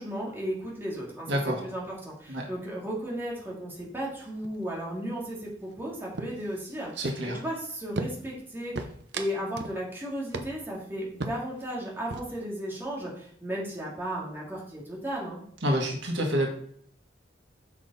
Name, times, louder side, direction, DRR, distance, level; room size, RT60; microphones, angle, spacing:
voice 1, 0.0-8.9 9.1-15.4, equal, 15° right, -5 dB, 2.4 m, -35 dB
voice 2, 1.3-1.6 2.3-2.5 7.0-7.4 15.6-16.5, equal, 80° right, 1 dB, 1.7 m, -27 dB
sound 1, 3.8-4.2 4.4-4.8 5.1-5.8 6.1-7.5 8.0-8.4 8.7-9.8 10.1-10.2 10.3-10.8 11.2-11.6 11.9-12.4, right 2 dB, 65° right, 0.8 m, -37 dB
7.2 x 6.0 x 4.2 m, 0.63 s
head